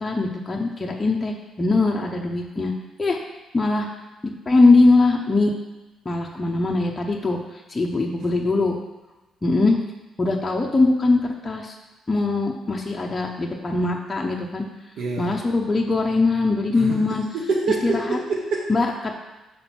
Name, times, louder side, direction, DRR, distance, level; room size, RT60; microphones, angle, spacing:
voice 1, 0.0-2.7 3.0-3.2 3.5-3.9 4.5-5.5 6.1-7.4 7.7-8.7 9.4-9.8 10.2-11.7 12.1-14.6 15.2-17.2 17.8-18.2 18.7-19.1, left 3 dB, 15° left, 0 dB, 0.6 m, -21 dB
voice 2, 15.0-15.4 16.8-18.7, right 3 dB, 70° right, -1 dB, 0.8 m, -26 dB
5.6 x 4.5 x 6.0 m, 1.1 s
cardioid pair, 170°, 0 cm